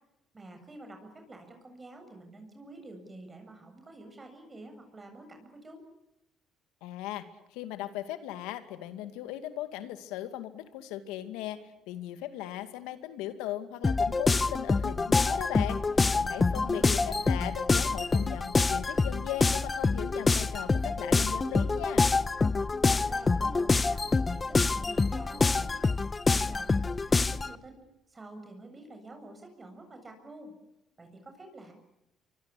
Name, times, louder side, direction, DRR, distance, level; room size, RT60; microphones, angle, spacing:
voice 1, 0.3-5.8 16.5-17.2 22.9-25.9 26.3-30.5 31.0-31.7, right 2 dB, 25° right, 5 dB, 7.4 m, -48 dB
voice 2, 6.8-7.3 7.5-11.6 11.9-15.8 16.1-22.0, left 13 dB, 85° left, 10 dB, 2.3 m, -38 dB
sound 1, 13.8-27.5, left 3 dB, 25° left, 1.2 m, -26 dB
25.5 x 25.0 x 8.5 m, 0.88 s
supercardioid pair, 75°, 0 cm